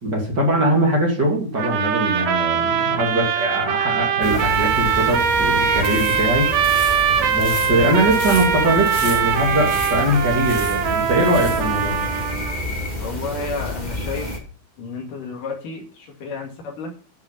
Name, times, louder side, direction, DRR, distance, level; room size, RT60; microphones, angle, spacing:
voice 1, 0.0-6.5 7.3-12.0, right 1 dB, 35° right, -1 dB, 2.8 m, -21 dB
sound 1, 1.6-12.6, right 7 dB, 75° right, 2.7 m, -21 dB
sound 2, 4.2-14.4, left 1 dB, 15° left, 1.8 m, -30 dB
sound 3, 5.8-11.7, left 3 dB, 45° left, 0.8 m, -35 dB
voice 2, 13.0-14.3 14.8-16.9, left 3 dB, 75° left, 2 dB, 3.6 m, -31 dB
11.0 x 6.4 x 5.5 m, 0.39 s
omnidirectional pair, 3.9 m